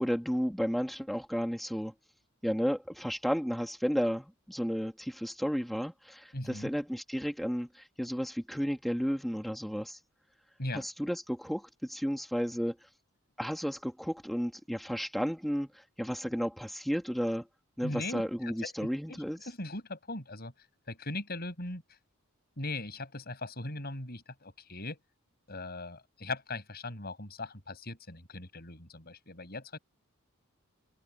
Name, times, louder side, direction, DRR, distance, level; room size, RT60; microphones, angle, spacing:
voice 1, 0.0-1.9 2.4-10.0 10.7-12.8 13.4-17.5 17.8-19.4, equal, ahead, 2.3 m, -33 dB
voice 2, 6.3-6.7 10.6-10.8 17.8-20.5 20.9-21.8 22.6-25.0 25.5-29.8, left 2 dB, 45° left, 7.2 m, -39 dB
head